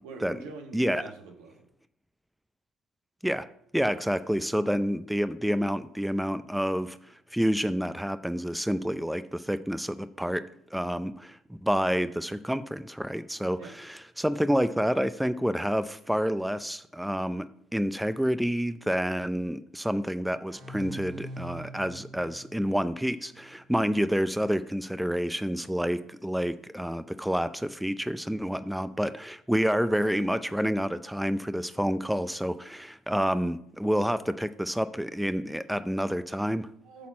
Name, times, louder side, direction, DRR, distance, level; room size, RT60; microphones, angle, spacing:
voice 1, 0.0-1.6 4.0-4.1 13.6-13.7 36.8-37.1, right 4 dB, 80° right, 3 dB, 1.4 m, -44 dB
voice 2, 0.7-1.0 3.2-3.5 3.7-10.4 10.7-17.5 17.7-36.7, equal, 5° right, 13 dB, 0.5 m, -28 dB
sound 1, 20.5-23.9, right 1 dB, 50° right, 2.5 m, -44 dB
8.5 x 4.2 x 6.3 m, 0.69 s
hypercardioid pair, 60°, 0 cm